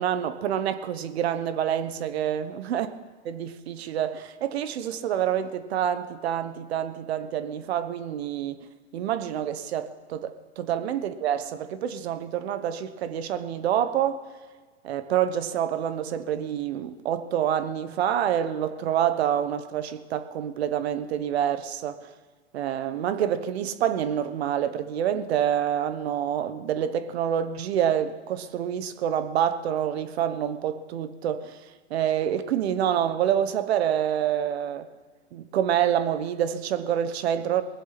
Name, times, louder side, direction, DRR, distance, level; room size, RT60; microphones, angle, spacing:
voice 1, 0.0-2.9 3.2-8.6 8.9-14.2 14.8-22.1 22.5-31.6 31.9-34.9 35.3-37.6, right 10 dB, 70° right, 1.2 m, -27 dB
20.5 x 7.8 x 5.9 m
hypercardioid pair, 135°, 33 cm